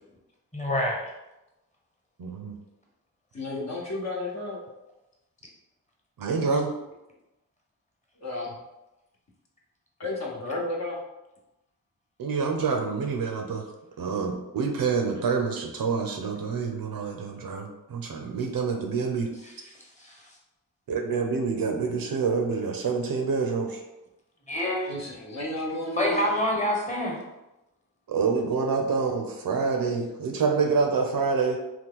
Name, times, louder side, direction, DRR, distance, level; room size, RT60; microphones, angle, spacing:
voice 1, 0.5-1.0 19.4-19.5 20.0-20.2 24.5-24.9 26.0-27.2, left 1 dB, 20° left, -2 dB, 1.1 m, -26 dB
voice 2, 2.2-2.6 6.2-6.7 12.2-13.6 14.0-19.3 20.9-23.8 28.1-31.6, right 5 dB, 65° right, 3 dB, 0.6 m, -27 dB
voice 3, 3.3-4.6 8.2-8.6 10.0-11.0 14.9-15.1 24.9-26.3, left 2 dB, 45° left, -3 dB, 1.0 m, -33 dB
2.9 x 2.3 x 3.6 m, 0.96 s
cardioid pair, 50°, 37 cm